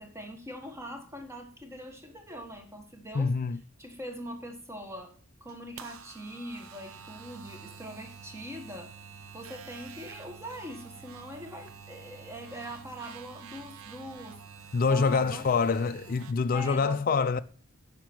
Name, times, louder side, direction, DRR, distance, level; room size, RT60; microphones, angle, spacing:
voice 1, 0.0-3.3 3.8-5.1 5.4-8.9 9.3-14.4 14.9-15.5 16.5-17.0, equal, 15° right, 1.5 m, -42 dB
voice 2, 3.1-3.6 14.7-17.4, left 5 dB, 45° left, 0.4 m, -26 dB
sound 1, 5.5-16.3, right 7 dB, 75° right, 0.7 m, -48 dB
9.8 x 5.9 x 6.0 m
head